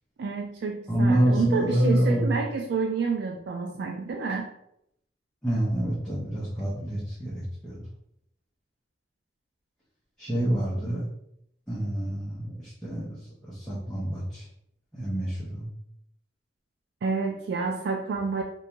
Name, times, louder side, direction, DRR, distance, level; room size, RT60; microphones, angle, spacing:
voice 1, 0.2-4.5 17.0-18.4, right 4 dB, 70° right, 2 dB, 0.3 m, -29 dB
voice 2, 0.9-2.3 5.4-7.8 10.2-11.0 11.7-14.5 14.9-15.7, right 1 dB, 5° left, -10 dB, 0.6 m, -27 dB
2.5 x 2.2 x 2.9 m, 0.74 s
head